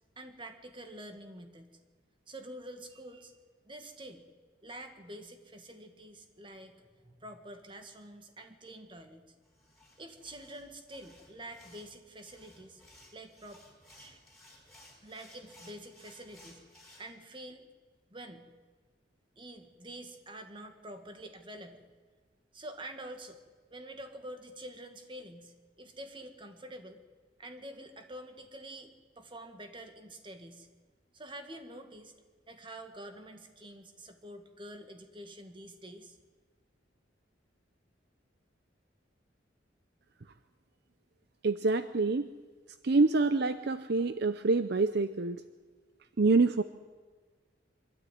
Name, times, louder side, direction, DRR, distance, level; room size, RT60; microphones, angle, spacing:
voice 1, 0.2-1.7 2.3-3.3 3.7-4.2 4.6-9.2 10.0-12.8 13.1-13.6 14.0-14.2 15.0-16.6 17.0-17.7 18.1-18.5 19.4-21.8 22.5-23.4 23.7-27.0 27.4-30.7 31.1-32.1 32.5-36.2, right 1 dB, 25° right, 6 dB, 2.0 m, -47 dB
sound 1, 9.4-17.0, left 1 dB, ahead, 5.0 m, -58 dB
voice 2, 41.4-42.3 42.8-45.4 46.2-46.6, right 3 dB, 60° right, 11 dB, 0.6 m, -26 dB
24.0 x 13.0 x 9.4 m, 1.4 s
head